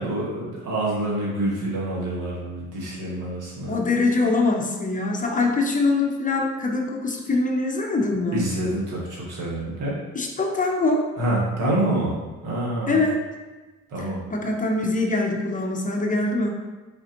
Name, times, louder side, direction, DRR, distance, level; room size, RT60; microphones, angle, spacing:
voice 1, 0.0-3.8 8.3-10.0 11.2-13.0 13.9-14.2, right 1 dB, 85° right, -5 dB, 1.5 m, -27 dB
voice 2, 3.7-8.4 10.1-11.0 12.9-13.2 14.0-16.6, left 3 dB, 25° left, 2 dB, 0.7 m, -23 dB
4.3 x 3.9 x 2.9 m, 1.2 s
cardioid pair, 90°, 30 cm